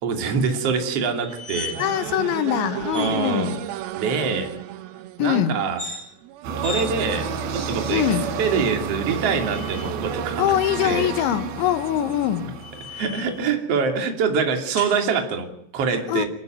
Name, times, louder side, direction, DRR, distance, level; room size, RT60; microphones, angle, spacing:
voice 1, 0.0-1.8 2.9-3.5 3.9-4.6 5.2-5.8 6.6-8.0 8.4-10.5 10.8-11.1 12.9-16.3, right 5 dB, 35° right, 2.9 m, -24 dB
sound 1, 1.1-2.0 2.3-2.5 2.9-3.1 5.6-6.0 6.6-6.9 7.6-8.1 9.1-9.9 11.8-13.4 14.8-15.0, left 4 dB, 15° left, 6.6 m, -37 dB
sound 2, 1.3-13.2, right 13 dB, 90° right, 2.1 m, -34 dB
voice 2, 1.8-3.6 5.2-5.6 7.9-8.3 10.4-12.6 16.1-16.3, left 11 dB, 75° left, 3.3 m, -23 dB
sound 3, 6.4-13.5, right 4 dB, 70° right, 4.9 m, -33 dB
26.5 x 13.0 x 9.3 m
omnidirectional pair, 5.8 m